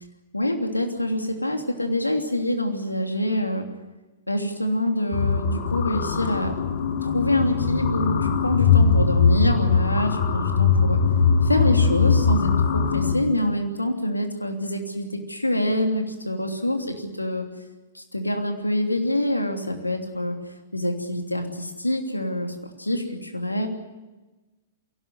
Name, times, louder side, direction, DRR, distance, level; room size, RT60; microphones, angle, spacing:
voice 1, 0.3-3.7 4.3-6.5 7.0-11.0 11.4-17.5 17.9-20.4 20.7-23.7, left 1 dB, 85° left, 4 dB, 3.0 m, -26 dB
sound 1, 5.1-13.1, left 5 dB, 50° left, 3.6 m, -21 dB
22.5 x 17.5 x 9.5 m, 1.2 s
figure-of-eight pair, 105°, 0 cm